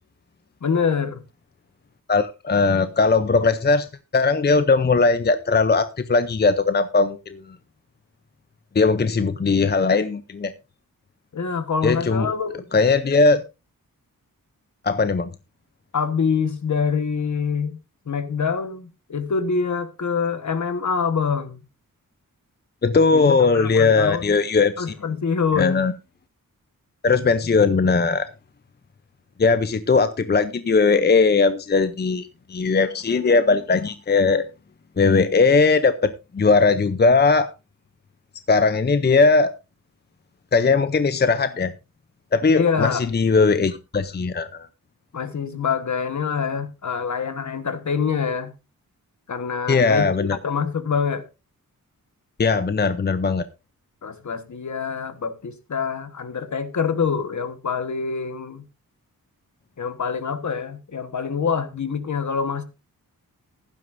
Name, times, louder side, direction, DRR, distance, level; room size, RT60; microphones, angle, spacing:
voice 1, 0.6-1.2 11.3-12.7 15.9-17.8 18.1-21.6 23.1-24.3 24.8-25.8 42.5-43.1 45.1-48.5 49.3-51.2 54.0-58.6 59.8-62.6, left 6 dB, 55° left, 1.4 m, -25 dB
voice 2, 2.1-3.9 4.1-7.4 8.7-10.5 11.8-12.3 12.7-13.4 14.8-15.3 22.8-24.9 25.6-25.9 27.0-28.3 29.4-34.4 35.0-37.5 38.5-39.5 40.5-41.7 42.3-44.7 49.7-50.4 52.4-53.4, left 4 dB, 30° left, 0.6 m, -19 dB
16.0 x 11.0 x 2.6 m
wide cardioid pair, 125°, 35 cm